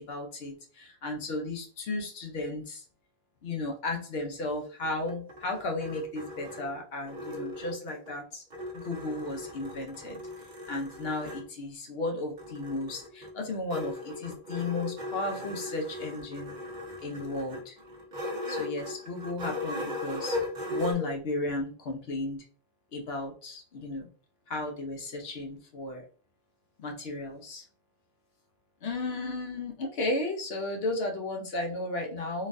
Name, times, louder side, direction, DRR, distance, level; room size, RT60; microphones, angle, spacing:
voice 1, 0.0-2.8 3.4-8.4 8.7-10.2 10.7-16.5 17.0-17.8 18.5-22.4 22.9-24.1 24.5-26.1 26.8-27.6 28.8-32.5, left 2 dB, 75° left, 2 dB, 0.9 m, -34 dB
sound 1, 4.8-8.1 8.5-11.5 12.4-20.9, left 2 dB, 50° right, 0.9 m, -38 dB
4.0 x 2.5 x 2.5 m, 0.40 s
omnidirectional pair, 1.1 m